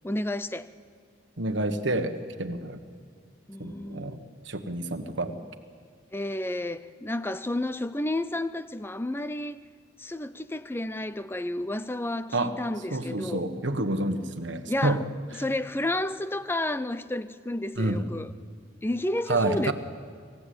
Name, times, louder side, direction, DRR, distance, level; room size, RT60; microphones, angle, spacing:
voice 1, 0.0-0.7 3.5-4.2 6.1-9.6 10.0-13.5 14.7-15.0 15.4-18.3 18.8-19.7, left 1 dB, 10° left, 0.5 m, -31 dB
voice 2, 1.4-2.8 3.6-4.2 4.4-5.4 12.3-12.5 12.9-15.0 15.3-15.4 17.8-18.1 19.3-19.7, right 2 dB, 65° right, 1.4 m, -28 dB
26.0 x 15.0 x 8.4 m
head